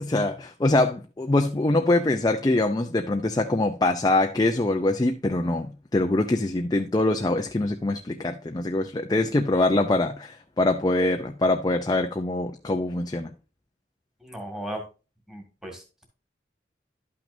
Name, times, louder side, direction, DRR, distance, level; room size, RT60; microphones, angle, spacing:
voice 1, 0.0-13.3, left 2 dB, 20° left, 0.5 m, -24 dB
voice 2, 14.2-14.8 15.3-16.0, right 1 dB, 5° right, 1.9 m, -36 dB
11.5 x 6.0 x 2.6 m
head